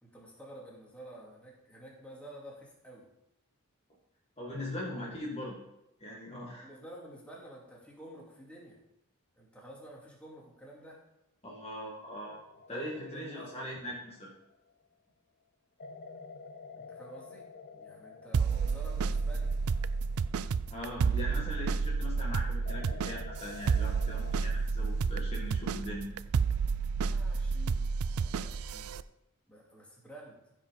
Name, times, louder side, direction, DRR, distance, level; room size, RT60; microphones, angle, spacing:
voice 1, 0.0-3.1 6.6-8.8 9.4-11.0 12.7-13.7 16.7-17.5 17.7-19.6 27.0-27.9 28.2-28.9 29.5-30.4, right 1 dB, 5° left, -3 dB, 2.4 m, -50 dB
voice 2, 4.4-5.5 6.0-6.7 11.4-12.4 12.7-14.3 20.7-26.1, left 1 dB, 30° left, -4 dB, 1.8 m, -40 dB
sound 1, 12.2-14.9 15.8-21.6 22.7-24.4, left 4 dB, 45° left, 0.7 m, -50 dB
sound 2, 18.3-29.0, right 5 dB, 80° right, 0.4 m, -30 dB
14.5 x 5.3 x 5.2 m, 0.87 s
head